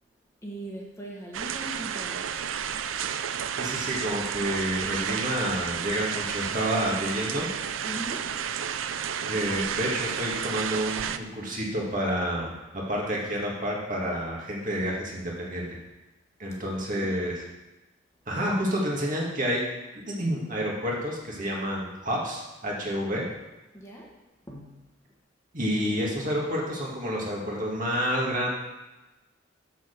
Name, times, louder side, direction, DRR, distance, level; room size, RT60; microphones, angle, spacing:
voice 1, 0.4-2.4 7.8-8.3 16.7-17.1 23.7-24.1 24.5-24.8, right 1 dB, 15° left, -2 dB, 1.3 m, -40 dB
sound 1, 1.3-11.2, right 8 dB, 85° right, 0.5 m, -31 dB
voice 2, 3.6-7.5 9.3-12.6 12.9-15.8 16.4-17.4 18.3-19.6 20.1-23.2 25.5-28.5, equal, 45° right, -3 dB, 2.1 m, -29 dB
6.8 x 6.6 x 6.8 m, 1.1 s
head